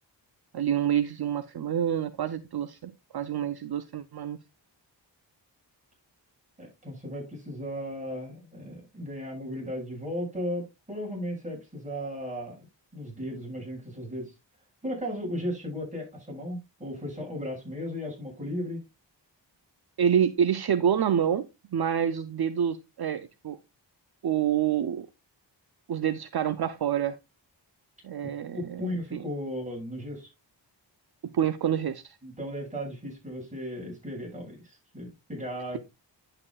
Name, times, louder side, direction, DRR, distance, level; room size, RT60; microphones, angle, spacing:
voice 1, 0.5-4.4 20.0-21.5 21.7-23.6 24.2-25.1 25.9-27.2 28.0-28.8 29.1-29.2 31.3-32.2, right 9 dB, 55° right, 0.7 m, -27 dB
voice 2, 6.6-12.6 12.9-14.3 14.8-18.8 28.2-30.3 32.2-35.8, equal, 15° right, 7.0 m, -36 dB
10.5 x 8.8 x 2.3 m
wide cardioid pair, 115°, 44 cm